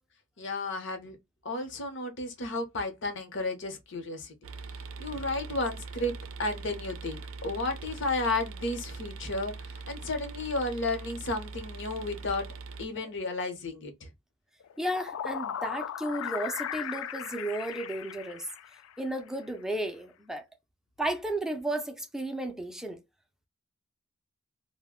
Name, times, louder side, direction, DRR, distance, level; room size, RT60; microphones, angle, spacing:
voice 1, 0.4-1.2 1.4-4.3 5.0-6.1 6.4-9.5 9.9-12.5 12.8-14.1, left 2 dB, 60° left, 0.8 m, -33 dB
sound 1, 4.4-12.9, right 4 dB, 75° right, 0.4 m, -42 dB
sound 2, 14.6-19.1, left 9 dB, 75° left, 0.3 m, -37 dB
voice 2, 14.8-18.5 19.0-20.4 21.0-23.0, right 1 dB, ahead, 0.4 m, -33 dB
2.5 x 2.2 x 3.6 m
head